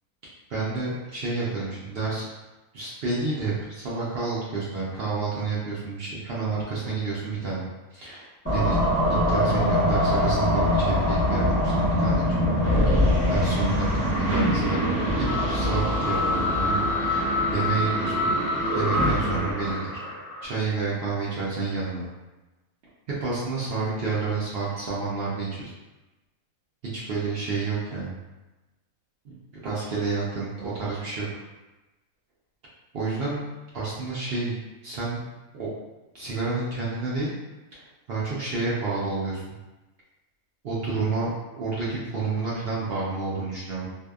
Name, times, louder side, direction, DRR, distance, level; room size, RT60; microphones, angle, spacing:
voice 1, 0.5-2.3 2.7-7.6 7.9-8.2 8.5-12.3 12.9-18.3 18.7-19.9 20.4-22.1 23.2-25.7 26.9-28.1 29.2-29.4 29.6-31.3 32.9-33.4 33.7-35.2 35.5-35.7 36.1-37.3 38.1-39.4 40.6-43.9, right 3 dB, 65° right, -7 dB, 0.6 m, -30 dB
sound 1, 8.5-20.4, left 1 dB, 10° left, 0.9 m, -23 dB
2.6 x 2.1 x 2.2 m, 1.1 s
omnidirectional pair, 1.5 m